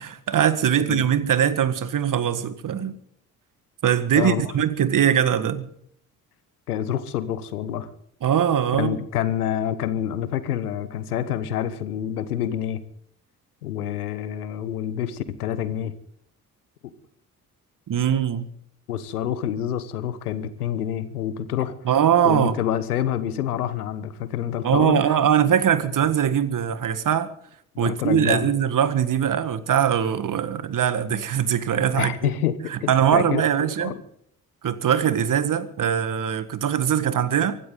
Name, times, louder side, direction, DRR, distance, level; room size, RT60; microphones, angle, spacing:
voice 1, 0.0-2.9 3.8-5.7 8.2-9.0 17.9-18.5 21.8-22.6 24.6-27.3 27.8-32.3 32.7-34.0 34.6-37.6, right 9 dB, 45° right, 1.7 m, -21 dB
voice 2, 4.1-4.5 6.7-7.9 8.8-12.8 13.6-15.9 18.9-21.7 22.2-25.1 27.8-28.5 32.0-33.4 33.8-34.0, left 10 dB, 85° left, 1.1 m, -27 dB
24.5 x 12.5 x 3.9 m
figure-of-eight pair, 45°, 44 cm